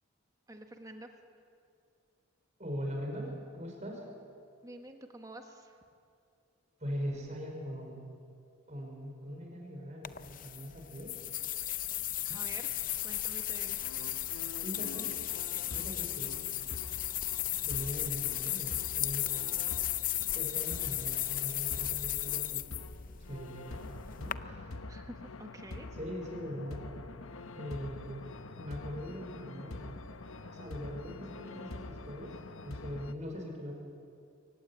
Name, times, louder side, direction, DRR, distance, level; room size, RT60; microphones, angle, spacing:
voice 1, 0.5-1.1 4.6-5.8 12.2-12.7 13.0-13.8 24.9-25.9, right 1 dB, 15° right, 4 dB, 1.5 m, -48 dB
voice 2, 2.6-4.1 6.8-8.0 8.7-11.2 14.6-15.1 15.7-16.5 17.6-19.3 20.3-22.9 23.3-24.8 25.9-26.8 27.5-28.2 28.6-30.0 30.4-32.4 32.6-33.7, equal, 35° right, 1 dB, 5.3 m, -41 dB
sound 1, 10.0-24.3, left 13 dB, 40° left, 0.6 m, -35 dB
sound 2, 13.8-33.1, left 2 dB, 80° left, 1.0 m, -46 dB
23.5 x 18.0 x 8.8 m, 2.5 s
head